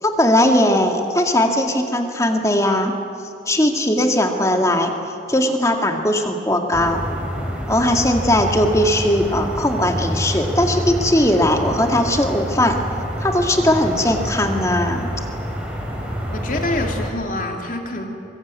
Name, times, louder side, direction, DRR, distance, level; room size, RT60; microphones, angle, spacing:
voice 1, 0.0-3.0 3.5-4.9 5.3-7.0 7.7-12.8 13.2-15.1, left 1 dB, 15° left, 3 dB, 2.1 m, -19 dB
sound 1, 6.7-17.1, equal, 5° right, 4.1 m, -27 dB
voice 2, 16.3-18.0, left 1 dB, 45° left, 2 dB, 3.1 m, -26 dB
24.0 x 22.5 x 9.5 m, 2.7 s
head